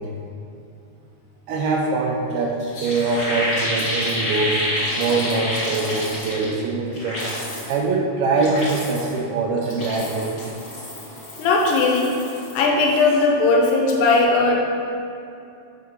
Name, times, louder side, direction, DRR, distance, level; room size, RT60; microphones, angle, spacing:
voice 1, 1.5-4.6 5.0-7.2 7.7-10.4, right 3 dB, 80° right, -1 dB, 2.4 m, -23 dB
sound 1, 2.3-2.4 2.6-6.6 6.9-7.8 8.2-9.2 9.6-12.6 12.8-13.2, left 1 dB, 50° left, 1.3 m, -28 dB
voice 2, 11.4-12.1 12.5-14.6, left 3 dB, 80° left, -1 dB, 2.9 m, -18 dB
8.3 x 3.7 x 5.4 m, 2.5 s
omnidirectional pair, 4.9 m